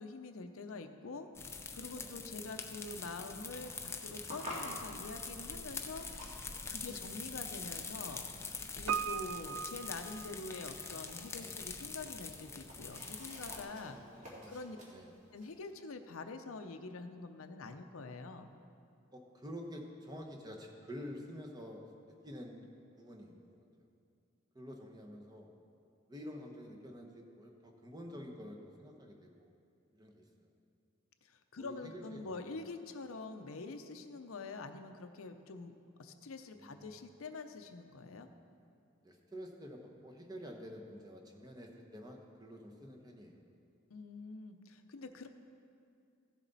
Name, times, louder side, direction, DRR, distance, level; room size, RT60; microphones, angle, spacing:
voice 1, 0.0-14.0 14.5-14.8 15.3-18.5 31.2-35.7 36.0-38.3 43.9-45.3, left 3 dB, 90° left, 7 dB, 0.7 m, -46 dB
sound 1, 1.3-13.7, left 4 dB, 15° left, 0.5 m, -44 dB
sound 2, 3.1-15.7, equal, 35° right, 2.3 m, -53 dB
voice 2, 6.8-7.2 8.8-9.3 11.4-11.6 13.7-14.5 14.9-15.1 19.1-21.9 22.2-22.7 23.0-23.9 24.5-25.5 26.1-29.5 29.9-30.5 31.6-32.4 36.5-37.0 39.0-43.4, equal, 20° right, 2 dB, 1.0 m, -49 dB
Piano, 8.9-10.9 11.2-11.3, right 8 dB, 75° right, 0.3 m, -39 dB
15.0 x 7.3 x 4.0 m, 2.5 s
head